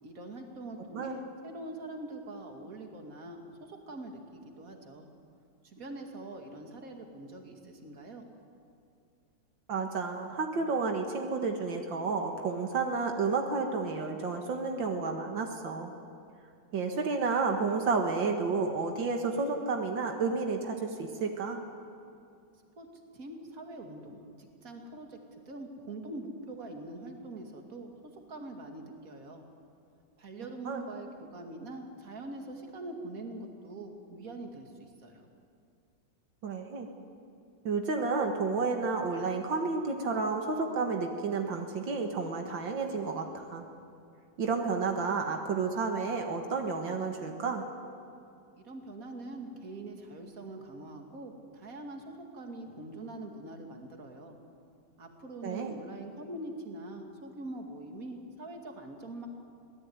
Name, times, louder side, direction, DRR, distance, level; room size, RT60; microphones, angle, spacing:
voice 1, 0.0-5.1 5.6-8.2 22.8-22.9 23.1-25.2 25.5-29.4 30.2-35.3 48.5-54.4 55.0-59.3, right 2 dB, 45° right, 3 dB, 2.8 m, -43 dB
voice 2, 9.7-15.9 16.7-21.6 30.7-30.8 36.4-36.9 37.6-43.6 44.4-47.6 55.4-55.8, right 4 dB, 80° right, 3 dB, 2.4 m, -31 dB
24.5 x 18.0 x 9.6 m, 2.4 s
omnidirectional pair, 2.0 m